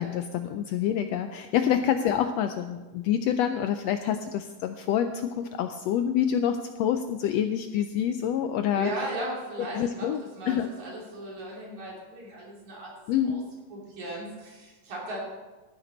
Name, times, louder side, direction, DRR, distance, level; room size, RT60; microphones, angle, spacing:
voice 1, 0.0-8.9 9.7-10.7 13.1-13.4, left 9 dB, 80° left, 8 dB, 1.5 m, -27 dB
voice 2, 8.7-12.9 13.2-13.4 13.7-15.2, right 1 dB, 75° right, -4 dB, 4.5 m, -36 dB
13.0 x 10.5 x 4.0 m, 1.2 s
omnidirectional pair, 3.4 m